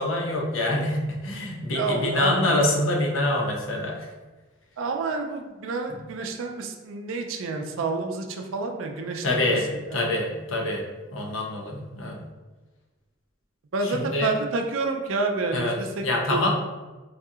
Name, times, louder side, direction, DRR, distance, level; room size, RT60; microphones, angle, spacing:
voice 1, 0.0-4.1 9.2-10.8 11.1-12.2 13.8-14.3 15.5-15.7 16.0-16.5, left 1 dB, 75° left, 0 dB, 0.7 m, -25 dB
voice 2, 1.7-2.6 4.8-9.6 13.7-16.0 16.3-16.5, right 3 dB, 75° right, 4 dB, 0.4 m, -29 dB
4.0 x 2.7 x 2.4 m, 1.2 s
head